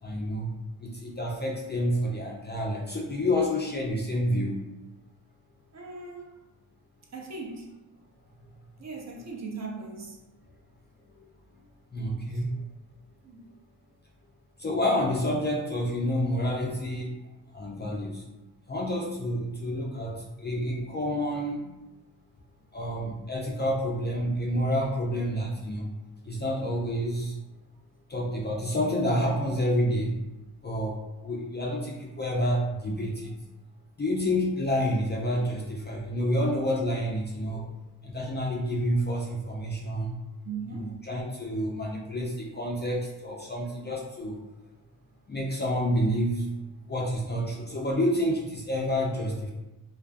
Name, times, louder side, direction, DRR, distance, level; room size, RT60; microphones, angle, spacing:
voice 1, 0.0-4.6 11.9-12.7 14.6-17.2 17.5-18.3 18.7-21.7 22.7-25.9 26.2-27.4 28.1-30.2 30.6-33.3 34.0-37.7 38.0-40.2 40.7-44.4 45.3-46.5 46.9-49.5, equal, 25° left, -1 dB, 0.4 m, -29 dB
voice 2, 5.7-6.4 7.1-7.7 8.8-10.2 12.3-12.4 13.2-13.5 20.7-20.8 40.4-40.9, right 4 dB, 35° right, -1 dB, 0.6 m, -39 dB
2.4 x 2.2 x 2.4 m, 1.0 s
supercardioid pair, 55°, 45 cm